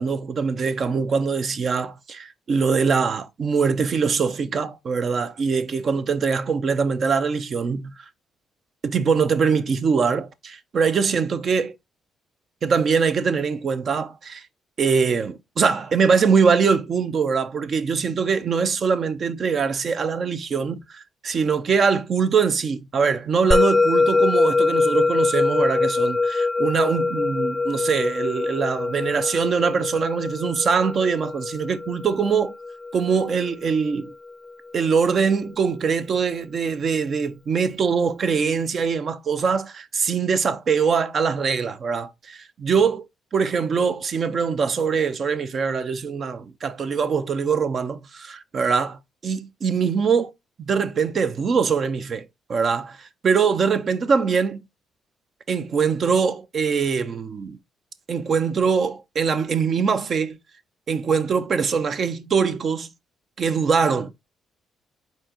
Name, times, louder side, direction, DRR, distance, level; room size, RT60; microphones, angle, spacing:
voice 1, 0.0-7.9 8.8-11.7 12.6-14.4 14.8-32.5 32.9-34.1 34.7-43.0 43.3-50.3 50.6-54.6 55.5-57.6 58.1-60.4 60.9-62.9 63.4-64.1, right 5 dB, 50° right, 0.6 m, -23 dB
Musical instrument, 23.5-34.1, left 3 dB, 10° left, 0.5 m, -23 dB
4.6 x 3.9 x 2.8 m
cardioid pair, 90°, 0 cm